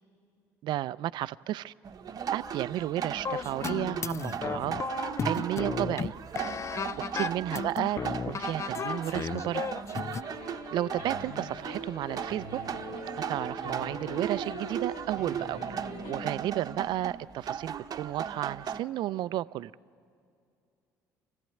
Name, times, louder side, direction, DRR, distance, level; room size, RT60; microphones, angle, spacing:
voice 1, 0.6-1.7 2.3-4.7 5.2-6.1 7.1-9.6 10.7-12.6 13.1-15.6 16.1-19.7, right 14 dB, 65° right, 0.5 m, -33 dB
sound 1, 1.8-18.8, right 8 dB, 45° right, 0.9 m, -37 dB
sound 2, 3.2-10.2, left 6 dB, 35° left, 0.5 m, -34 dB
sound 3, 10.2-16.3, left 3 dB, 75° left, 1.9 m, -43 dB
25.0 x 15.5 x 9.1 m
hypercardioid pair, 65°, 8 cm